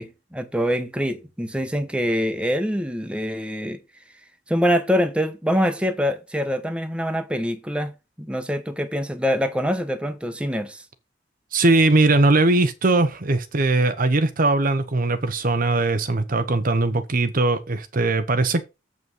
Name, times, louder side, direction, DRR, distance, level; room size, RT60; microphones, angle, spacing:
voice 1, 0.0-3.8 4.5-7.9 8.2-10.8, equal, 5° right, 1.2 m, -24 dB
voice 2, 11.5-18.6, right 2 dB, 45° right, 0.9 m, -20 dB
7.9 x 5.5 x 5.5 m
head